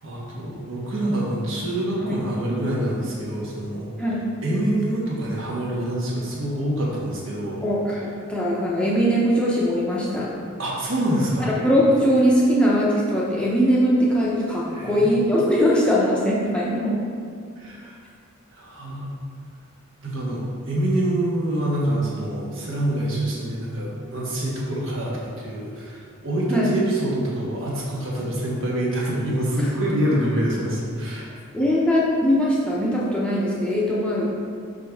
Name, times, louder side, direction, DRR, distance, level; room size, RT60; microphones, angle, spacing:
voice 1, 0.0-3.9 4.4-7.6 10.6-11.5 14.7-15.1 17.6-18.0 18.5-19.1 20.0-31.3, right 1 dB, 65° right, -5 dB, 1.2 m, -26 dB
voice 2, 7.6-10.3 11.4-17.0 26.5-26.8 29.6-29.7 31.5-34.3, equal, 5° left, -6 dB, 0.7 m, -21 dB
5.2 x 5.2 x 3.5 m, 2.3 s
head